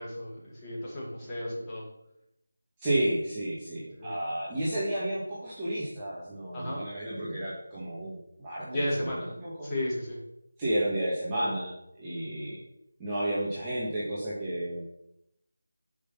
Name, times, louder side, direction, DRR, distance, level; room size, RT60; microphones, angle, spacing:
voice 1, 0.0-1.8 4.0-4.2 6.5-6.8 8.6-9.3 9.6-10.2, left 1 dB, 15° left, -9 dB, 4.7 m, -33 dB
voice 2, 2.8-8.7 9.0-9.7 10.6-12.6 13.0-14.8, right 1 dB, 15° right, -9 dB, 2.3 m, -32 dB
11.0 x 6.2 x 5.8 m, 0.81 s
figure-of-eight pair, 160°, 0 cm